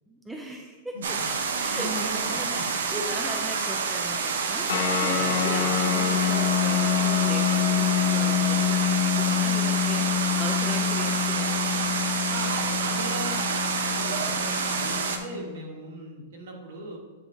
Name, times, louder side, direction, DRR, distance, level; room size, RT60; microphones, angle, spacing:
voice 1, 0.1-1.2 1.6-11.7, equal, 5° right, 0 dB, 0.3 m, -38 dB
voice 2, 0.9-1.3 1.7-2.6 5.1-5.3 8.2-8.4 9.9-10.1 12.3-17.0, right 2 dB, 55° right, 0 dB, 1.4 m, -38 dB
sound 1, 1.0-15.2, right 5 dB, 80° right, 0.7 m, -28 dB
sound 2, 4.7-15.6, left 10 dB, 60° left, 0.9 m, -27 dB
8.9 x 3.2 x 3.7 m, 1.4 s
supercardioid pair, 175°, 0 cm